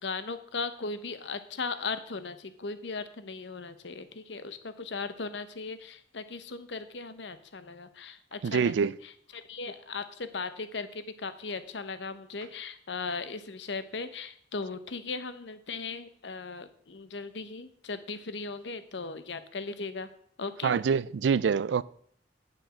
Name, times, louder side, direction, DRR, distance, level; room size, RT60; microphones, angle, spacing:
voice 1, 0.0-20.1 20.4-20.8, left 4 dB, 75° left, 0.9 m, -38 dB
voice 2, 8.4-9.0 20.6-21.8, right 6 dB, 75° right, 0.4 m, -25 dB
9.0 x 7.4 x 6.3 m
head